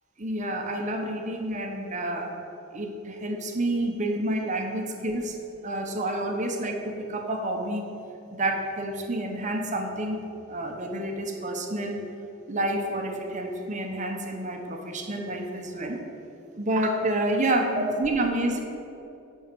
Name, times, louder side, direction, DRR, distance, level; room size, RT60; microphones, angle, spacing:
voice 1, 0.2-2.4 2.7-5.4 5.6-7.9 8.3-12.0 12.5-16.0 16.6-18.6, right 1 dB, 35° right, 2 dB, 1.0 m, -29 dB
8.5 x 5.8 x 7.7 m, 2.8 s
head